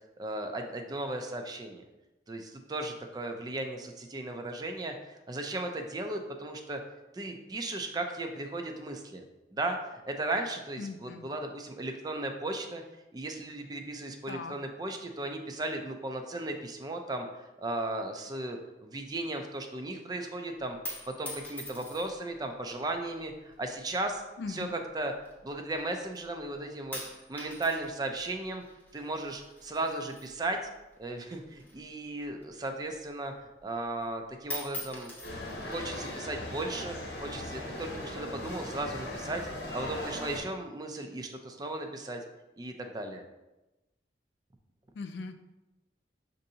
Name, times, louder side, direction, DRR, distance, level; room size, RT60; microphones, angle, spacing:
voice 1, 0.2-1.8 2.3-6.8 7.1-9.2 9.5-12.8 13.1-17.3 17.6-20.8 21.2-24.2 24.5-25.1 25.4-27.0 27.3-28.6 28.9-30.6 31.0-33.3 33.6-35.1 35.4-39.4 39.7-42.2 42.6-43.2, right 2 dB, 20° right, 5 dB, 0.4 m, -36 dB
voice 2, 10.8-11.3 14.3-14.5 24.4-24.8 44.9-45.4, left 4 dB, 80° left, 7 dB, 0.4 m, -39 dB
sound 1, 20.6-22.3 23.2-23.6 24.4-25.8 26.2-26.5 26.9-31.0 31.3-32.9 33.3-33.4 33.8-34.2 34.4-36.2 37.0-37.6, left 1 dB, 10° left, 0.7 m, -44 dB
sound 2, 35.2-40.4, left 1 dB, 60° left, 0.9 m, -39 dB
6.3 x 2.6 x 2.7 m, 1.0 s
head